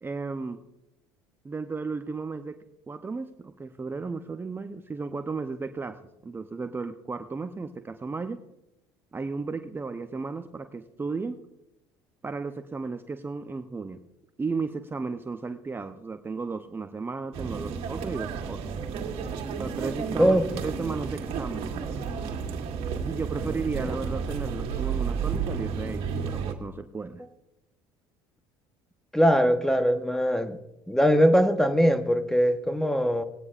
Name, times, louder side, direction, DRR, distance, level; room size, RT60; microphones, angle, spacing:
voice 1, 0.0-0.6 1.4-8.4 9.1-11.4 12.2-14.0 14.4-18.7 19.6-21.7 23.0-27.2, right 4 dB, 20° right, 8 dB, 0.6 m, -34 dB
sound 1, 17.3-26.5, right 6 dB, 65° right, 1.8 m, -32 dB
voice 2, 29.1-30.6 30.9-33.2, equal, 5° left, 9 dB, 1.0 m, -21 dB
19.5 x 9.5 x 2.5 m, 0.90 s
supercardioid pair, 85°, 11 cm